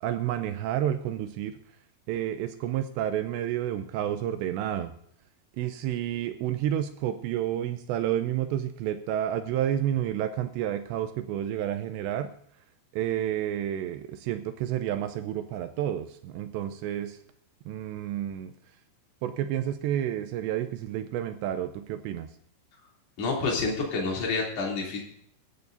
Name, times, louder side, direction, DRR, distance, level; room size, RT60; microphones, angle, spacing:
voice 1, 0.0-1.6 2.1-4.9 5.6-12.3 12.9-17.2 17.7-18.5 19.2-22.3, right 11 dB, 80° right, 8 dB, 2.6 m, -30 dB
voice 2, 23.2-25.0, left 3 dB, 35° left, -2 dB, 3.6 m, -28 dB
22.5 x 11.0 x 2.7 m, 0.69 s
omnidirectional pair, 5.6 m